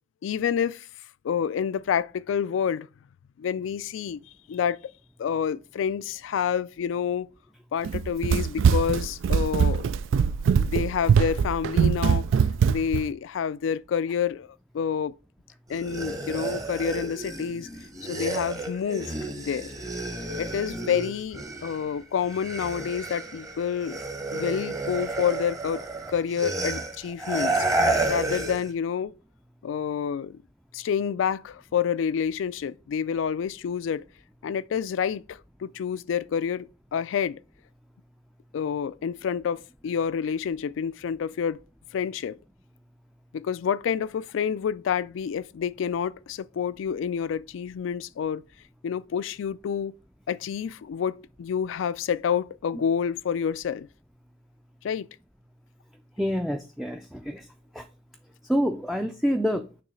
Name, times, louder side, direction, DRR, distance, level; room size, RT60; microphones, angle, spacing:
voice 1, 0.2-0.9 1.2-2.9 3.4-4.2 4.5-4.8 5.2-7.3 7.7-9.8 10.6-12.3 12.7-14.5 14.7-15.1 15.7-17.7 18.1-19.7 20.4-24.0 24.3-27.7 28.1-29.1 29.6-30.4 30.7-34.0 34.4-37.4 38.5-41.6 41.9-42.4 43.3-48.4 48.8-49.9 50.3-53.9 54.8-55.1, left 7 dB, 85° left, 0.3 m, -28 dB
Run, 7.8-13.1, right 6 dB, 85° right, 0.3 m, -22 dB
sound 1, 15.7-21.9 22.2-28.7, right 2 dB, 20° right, 0.9 m, -31 dB
voice 2, 56.2-57.5 57.7-57.9 58.5-59.7, equal, ahead, 0.3 m, -27 dB
6.7 x 3.1 x 4.9 m
head